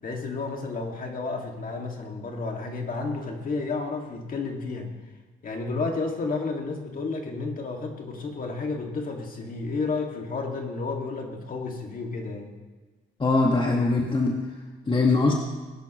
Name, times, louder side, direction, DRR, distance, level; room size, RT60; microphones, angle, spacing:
voice 1, 0.0-4.9 5.4-12.5, left 3 dB, 45° left, 1 dB, 2.3 m, -31 dB
voice 2, 13.2-14.4 14.9-15.3, left 3 dB, 25° left, -1 dB, 1.7 m, -21 dB
20.0 x 11.0 x 3.2 m, 1.3 s
cardioid pair, 90°, 20 cm